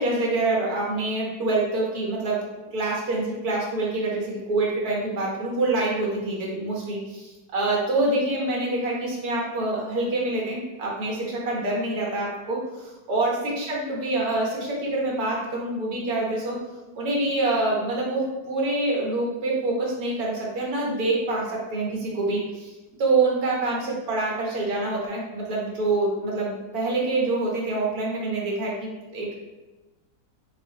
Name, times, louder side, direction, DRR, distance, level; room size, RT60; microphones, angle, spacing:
voice 1, 0.0-2.4 2.7-16.6 16.9-22.7 23.0-29.3, right 2 dB, 65° right, -3 dB, 1.4 m, -26 dB
4.7 x 2.5 x 2.7 m, 1.1 s
omnidirectional pair, 1.8 m